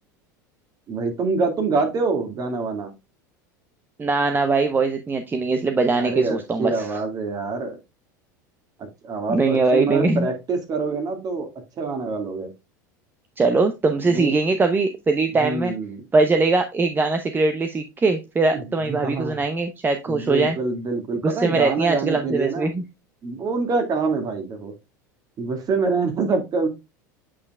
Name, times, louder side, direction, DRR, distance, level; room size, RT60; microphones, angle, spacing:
voice 1, 0.9-2.9 5.9-7.8 8.8-11.5 11.8-12.5 14.0-14.3 15.4-16.0 18.5-19.4 20.1-22.7 23.2-24.7 25.4-26.7, right 4 dB, 40° right, 5 dB, 2.1 m, -25 dB
voice 2, 4.0-6.9 9.3-10.3 13.4-15.7 16.1-20.5 21.2-22.8, right 3 dB, 20° right, 7 dB, 0.8 m, -21 dB
8.4 x 5.3 x 2.4 m, 0.24 s
hypercardioid pair, 90°, 10 cm